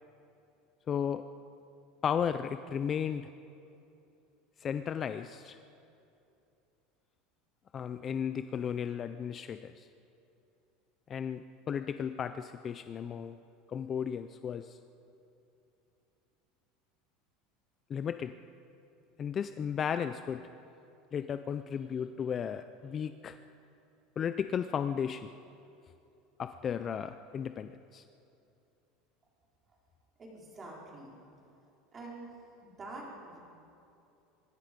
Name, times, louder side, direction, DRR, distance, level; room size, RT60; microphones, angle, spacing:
voice 1, 0.9-1.2 2.0-3.3 4.6-5.6 7.7-9.9 11.1-13.4 13.7-14.8 17.9-18.3 19.2-20.4 21.1-23.4 24.2-25.3 26.4-28.0, left 8 dB, 25° left, 10 dB, 0.5 m, -34 dB
voice 2, 30.2-31.1 31.9-32.3 32.6-33.4, right 2 dB, 20° right, -3 dB, 4.3 m, -46 dB
25.0 x 20.5 x 5.2 m, 2.7 s
cardioid pair, 170°, 0 cm